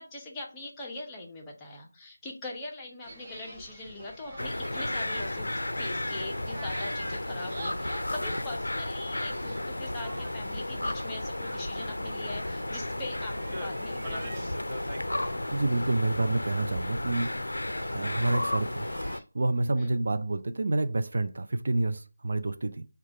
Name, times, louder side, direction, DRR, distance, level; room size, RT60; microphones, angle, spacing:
voice 1, 0.0-14.6 19.8-19.9, left 2 dB, 10° left, 0.8 m, -42 dB
sound 1, 3.0-19.2, right 1 dB, 25° right, 1.0 m, -46 dB
sound 2, 4.4-19.2, left 1 dB, 80° left, 0.4 m, -33 dB
voice 2, 15.3-17.6 17.9-18.9 19.3-22.9, right 2 dB, 55° right, 0.4 m, -28 dB
4.7 x 2.4 x 4.4 m
figure-of-eight pair, 165°, 0 cm